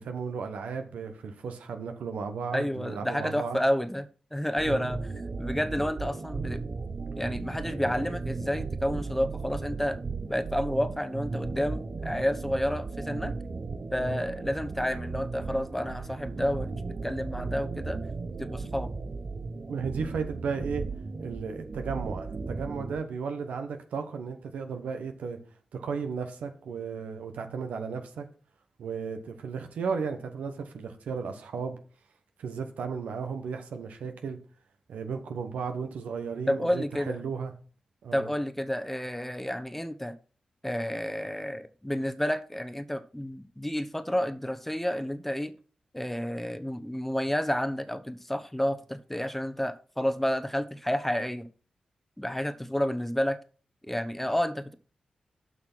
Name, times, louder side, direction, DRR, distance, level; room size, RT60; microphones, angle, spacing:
voice 1, 0.0-3.6 4.6-4.9 19.7-20.8 21.2-25.4 25.7-28.3 28.8-31.8 32.4-34.4 34.9-37.5 38.0-38.3, right 5 dB, 85° right, 6 dB, 1.1 m, -34 dB
voice 2, 2.5-4.1 4.3-5.0 5.4-6.6 7.2-10.0 10.3-13.3 13.9-18.0 18.4-18.9 36.5-37.2 38.1-40.1 40.6-45.5 45.9-51.5 52.2-53.4 53.8-54.7, equal, 10° left, 11 dB, 1.0 m, -30 dB
sound 1, 4.6-23.0, right 4 dB, 50° right, 1.0 m, -36 dB
7.5 x 5.8 x 6.1 m, 0.40 s
cardioid pair, 45°, 2 cm